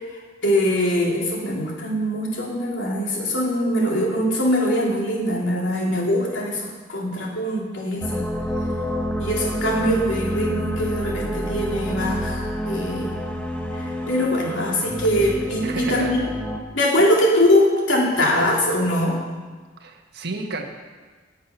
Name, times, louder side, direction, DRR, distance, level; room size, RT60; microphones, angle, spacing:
voice 1, 0.4-8.2 9.2-13.1 13.7-16.2 16.7-19.2, left 1 dB, 70° left, -2 dB, 3.0 m, -22 dB
sound 1, 8.0-16.6, equal, 5° left, 1.1 m, -28 dB
voice 2, 15.6-16.1 19.8-20.7, right 3 dB, 55° right, 3 dB, 1.4 m, -31 dB
18.0 x 7.3 x 6.1 m, 1.4 s
head